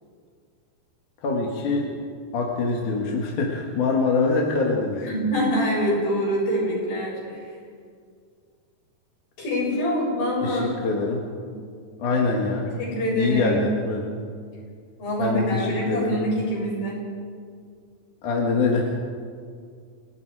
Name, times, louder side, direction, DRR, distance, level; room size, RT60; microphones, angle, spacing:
voice 1, 1.2-1.9 2.3-5.1 10.4-11.3 12.0-12.8 13.1-14.1 15.2-16.2 18.2-19.0, left 3 dB, 60° left, -1 dB, 3.2 m, -24 dB
voice 2, 5.0-7.5 9.4-10.6 11.4-11.5 12.7-13.7 15.0-17.0, equal, 75° left, -4 dB, 9.1 m, -25 dB
29.5 x 18.0 x 4.9 m, 2.1 s
omnidirectional pair, 4.2 m